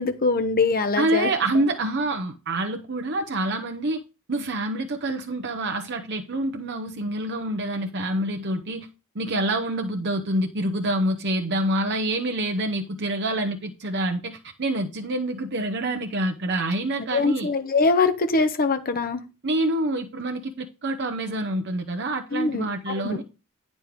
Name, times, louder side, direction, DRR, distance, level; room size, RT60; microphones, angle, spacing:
voice 1, 0.0-1.3 17.1-19.2 22.3-23.2, left 3 dB, 40° left, 1.0 m, -23 dB
voice 2, 1.0-4.0 4.3-8.9 9.1-17.5 19.4-23.2, right 1 dB, 50° right, 0.9 m, -27 dB
9.5 x 5.4 x 4.6 m
head